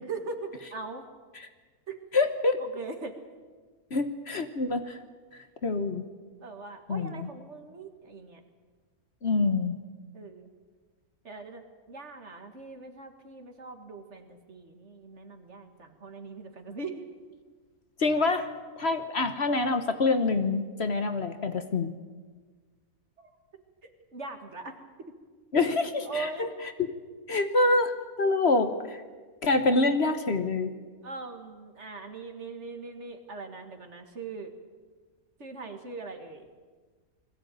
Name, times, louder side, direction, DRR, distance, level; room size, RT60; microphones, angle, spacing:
voice 1, 0.1-1.0 1.9-2.0 2.6-3.2 6.4-8.4 10.1-10.5 11.2-17.0 23.2-23.3 23.8-24.7 25.0-25.1 26.0-26.5 31.0-34.5 35.4-36.5, right 3 dB, 50° right, 6 dB, 2.1 m, -41 dB
voice 2, 2.1-2.6 3.9-5.0 5.6-6.0 6.9-7.3 9.2-9.8 18.0-18.5 18.8-21.9 25.5-26.5 27.3-27.9 28.2-29.0 29.4-30.7, left 3 dB, 50° left, 8 dB, 1.3 m, -26 dB
21.0 x 15.5 x 9.2 m, 1.4 s
omnidirectional pair, 1.5 m